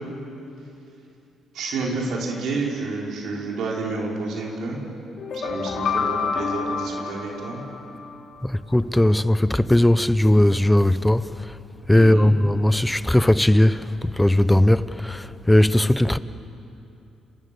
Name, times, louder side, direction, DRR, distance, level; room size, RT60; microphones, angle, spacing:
voice 1, 1.5-4.8 5.3-7.6 12.0-12.3, right 3 dB, 75° right, 5.3 m, -29 dB
sound 1, 5.2-8.2, left 5 dB, 60° left, 3.3 m, -28 dB
voice 2, 8.4-11.2 11.9-13.8 14.2-16.2, left 1 dB, 5° left, 0.9 m, -18 dB
30.0 x 28.0 x 7.2 m
cardioid pair, 90°, 0 cm